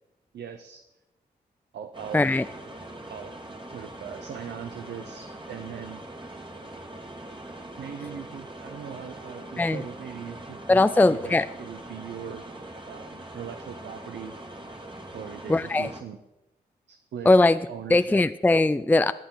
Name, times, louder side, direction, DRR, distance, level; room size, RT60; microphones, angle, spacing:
voice 1, 0.3-0.8 1.7-2.2 3.1-3.3 3.7-6.0 7.8-12.4 12.8-14.3 15.1-16.2 16.9-17.3 17.7-18.2, right 8 dB, 75° right, 7 dB, 0.7 m, -40 dB
sound 1, 1.9-16.0, right 1 dB, 25° right, 2.0 m, -42 dB
voice 2, 2.1-2.4 9.6-9.8 10.7-11.4 15.5-15.9 17.3-17.6 17.9-19.1, left 2 dB, 10° left, 13 dB, 0.4 m, -20 dB
15.0 x 9.0 x 3.9 m, 0.95 s
supercardioid pair, 40°, 18 cm